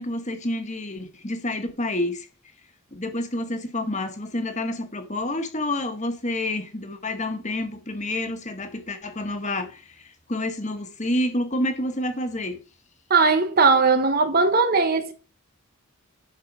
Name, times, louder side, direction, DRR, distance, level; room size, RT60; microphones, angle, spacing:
voice 1, 0.0-2.3 2.9-12.6, left 1 dB, 30° left, 1.7 m, -29 dB
voice 2, 13.1-15.1, right 4 dB, 45° right, 1.1 m, -19 dB
11.5 x 4.5 x 6.2 m
head